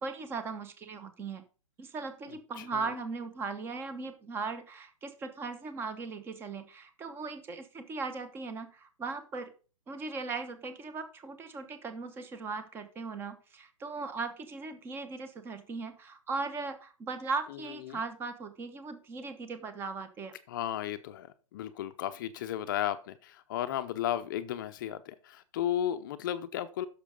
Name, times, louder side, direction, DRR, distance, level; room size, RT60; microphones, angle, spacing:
voice 1, 0.0-1.4 1.8-9.5 9.9-20.3, right 4 dB, 15° right, 10 dB, 1.0 m, -38 dB
voice 2, 2.6-2.9 17.9-18.0 20.5-26.9, left 11 dB, 40° left, 11 dB, 0.6 m, -34 dB
9.9 x 6.7 x 5.3 m, 0.36 s
hypercardioid pair, 155°, 17 cm